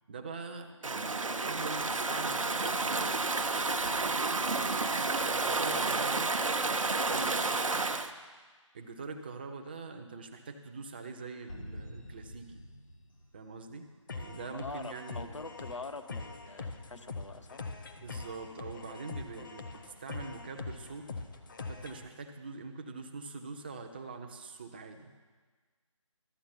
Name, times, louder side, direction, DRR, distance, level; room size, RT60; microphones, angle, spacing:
voice 1, 0.1-3.2 4.6-6.3 7.1-7.5 8.7-12.6 13.3-15.3 18.0-21.1 21.7-25.2, right 4 dB, 20° right, 5 dB, 0.5 m, -44 dB
Stream / Ocean, 0.8-8.1, right 3 dB, 75° right, 0.7 m, -30 dB
voice 2, 5.5-6.3 7.0-7.7 14.4-17.6, left 3 dB, 65° left, 7 dB, 0.8 m, -45 dB
sound 1, 11.5-14.2, left 1 dB, 85° left, 1.6 m, -48 dB
sound 2, 14.1-22.1, left 3 dB, 40° left, 0.8 m, -43 dB
13.5 x 7.4 x 5.8 m, 1.5 s
figure-of-eight pair, 155°, 17 cm